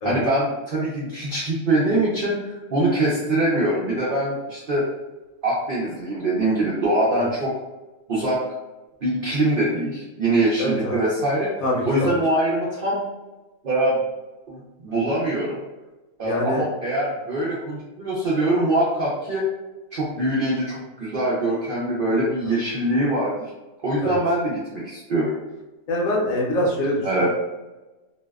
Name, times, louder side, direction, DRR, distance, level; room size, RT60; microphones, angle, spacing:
voice 1, 0.0-4.8 5.4-7.5 8.1-8.4 9.0-11.5 11.8-13.0 13.6-14.0 14.5-15.6 16.2-19.4 19.9-23.4 23.8-25.3 27.0-27.3, right 1 dB, 70° right, -6 dB, 0.5 m, -23 dB
voice 2, 10.6-11.0 11.6-12.1 16.2-16.6 24.0-24.2 25.9-27.3, left 1 dB, 70° left, -3 dB, 1.0 m, -24 dB
2.6 x 2.1 x 2.2 m, 1.1 s
omnidirectional pair, 1.7 m